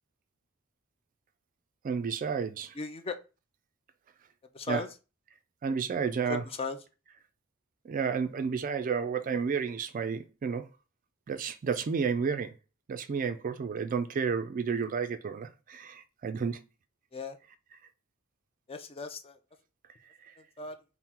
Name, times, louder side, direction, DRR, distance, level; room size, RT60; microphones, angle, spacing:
voice 1, 1.8-2.7 4.7-4.8 5.6-6.4 7.8-10.7 11.3-12.5 12.9-16.7 20.2-20.3, right 6 dB, 40° right, 0.3 m, -31 dB
voice 2, 2.7-3.2 4.5-4.9 6.3-6.8 17.1-17.4 18.7-19.4 20.6-20.8, left 4 dB, 25° left, 0.4 m, -36 dB
3.7 x 2.0 x 4.3 m
head